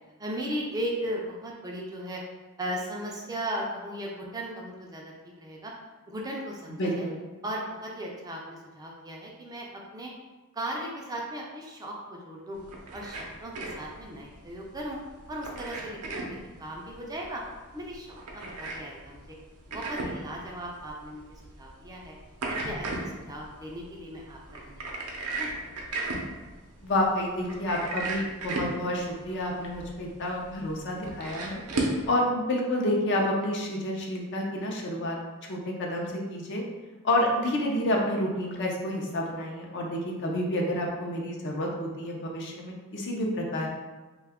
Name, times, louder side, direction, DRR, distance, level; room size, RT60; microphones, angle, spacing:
voice 1, 0.2-2.2 2.6-5.7 6.1-7.1 7.4-10.1 10.5-12.6 12.9-15.0 15.3-16.3 16.6-17.4 17.7-19.2 19.7-21.2 21.6-22.1 22.6-25.0 25.3-25.7, right 1 dB, 15° right, -2 dB, 0.4 m, -37 dB
voice 2, 6.7-7.2 26.8-31.6 32.1-35.2 35.5-36.6 37.0-43.7, left 1 dB, 55° left, -1 dB, 0.5 m, -29 dB
sound 1, 12.6-32.1, right 2 dB, 85° right, 0.6 m, -36 dB
2.7 x 2.3 x 3.5 m, 1.2 s
head